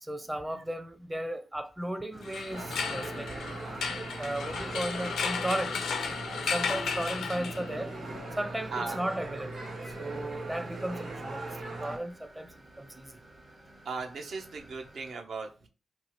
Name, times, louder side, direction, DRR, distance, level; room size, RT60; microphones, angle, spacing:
voice 1, 0.0-3.3 4.2-5.8 6.5-7.9 8.4-9.7 10.0-12.5 12.8-13.1, right 1 dB, 15° right, 0.6 m, -35 dB
sound 1, 2.1-15.1, right 1 dB, 45° right, 1.1 m, -52 dB
sound 2, 2.2-7.9, left 5 dB, 75° left, 0.4 m, -34 dB
sound 3, 2.5-12.0, right 2 dB, 85° right, 1.5 m, -40 dB
voice 2, 13.8-15.7, right 4 dB, 65° right, 0.7 m, -37 dB
2.7 x 2.3 x 3.2 m
supercardioid pair, 40°, 0 cm